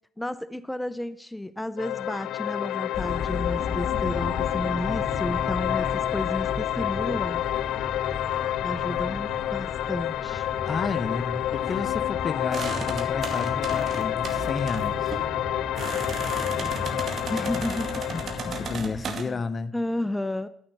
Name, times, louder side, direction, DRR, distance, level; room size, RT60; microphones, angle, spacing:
voice 1, 0.2-7.4 8.6-10.5 16.3-16.9 17.3-18.1 18.9-19.4 19.7-20.5, left 1 dB, 5° left, 0.5 m, -32 dB
sound 1, 1.8-18.8, left 12 dB, 85° left, 0.3 m, -29 dB
sound 2, 2.9-19.0, left 2 dB, 60° left, 5.5 m, -36 dB
voice 2, 10.6-15.2 18.1-19.7, left 4 dB, 40° left, 0.8 m, -32 dB
sound 3, 12.5-19.2, right 5 dB, 55° right, 2.3 m, -36 dB
13.0 x 5.8 x 6.6 m
cardioid pair, 90°, 0 cm